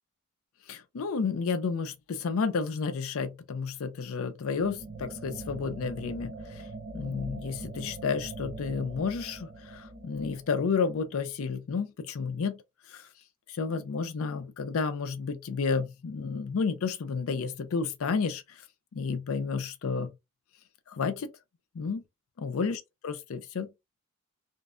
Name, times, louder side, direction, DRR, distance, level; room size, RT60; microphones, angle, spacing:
voice 1, 0.7-6.6 6.9-12.6 12.9-13.0 13.5-18.4 18.9-20.1 20.9-21.3 21.7-22.0 22.4-22.8 23.0-23.7, left 5 dB, 65° left, 0.4 m, -31 dB
sound 1, 4.6-11.3, right 2 dB, 45° right, 0.6 m, -43 dB
2.5 x 2.1 x 2.4 m
head